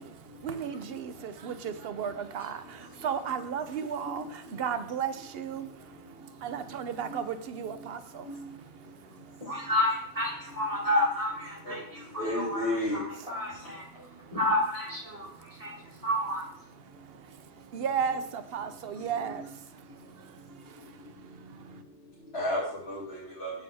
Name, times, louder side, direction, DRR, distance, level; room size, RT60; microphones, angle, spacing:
voice 1, 0.0-9.5 13.5-14.3 15.1-16.0 16.8-21.8, right 7 dB, 60° right, 11 dB, 0.8 m, -36 dB
voice 2, 6.1-7.2 7.6-7.8 8.2-8.5 9.5-9.6 11.6-13.0 18.1-18.2 19.0-19.5 22.3-23.5, left 1 dB, 60° left, -7 dB, 2.5 m, -35 dB
voice 3, 9.4-13.8 14.3-15.7 16.0-16.5, left 1 dB, 30° right, -5 dB, 3.1 m, -30 dB
8.3 x 7.0 x 3.5 m, 0.68 s
omnidirectional pair, 1.2 m